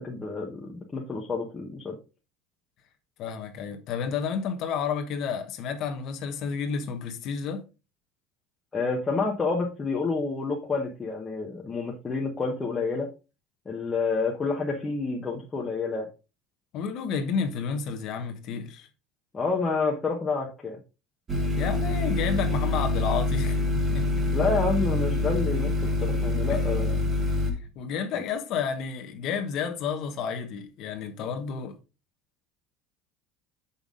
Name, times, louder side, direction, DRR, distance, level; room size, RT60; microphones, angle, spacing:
voice 1, 0.0-2.0 8.7-13.1 13.7-16.1 19.3-20.8 24.3-27.0, left 4 dB, 15° left, 1.0 m, -29 dB
voice 2, 3.2-7.6 16.7-18.9 21.6-24.1 26.5-26.6 27.6-31.8, left 6 dB, 45° left, 1.1 m, -31 dB
sound 1, 21.3-27.5, left 2 dB, 20° right, 1.3 m, -26 dB
6.8 x 5.5 x 3.7 m
cardioid pair, 160°, 0 cm